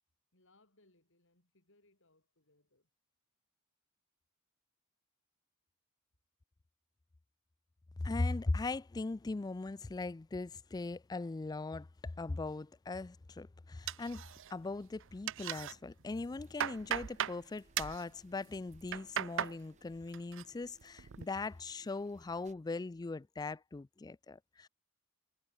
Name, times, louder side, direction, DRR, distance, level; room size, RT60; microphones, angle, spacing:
voice 1, 0.3-2.9, left 2 dB, 65° left, 7.3 m, -70 dB
voice 2, 8.0-14.2 14.5-24.7, left 3 dB, 20° left, 0.3 m, -39 dB
sound 1, 13.9-14.7 15.0-15.7 16.2-17.4 17.7-18.0 18.7-19.6 19.9-20.4 20.8-21.2, right 10 dB, 65° right, 0.5 m, -38 dB
sound 2, 16.4-22.5, right 2 dB, 35° right, 7.6 m, -69 dB
head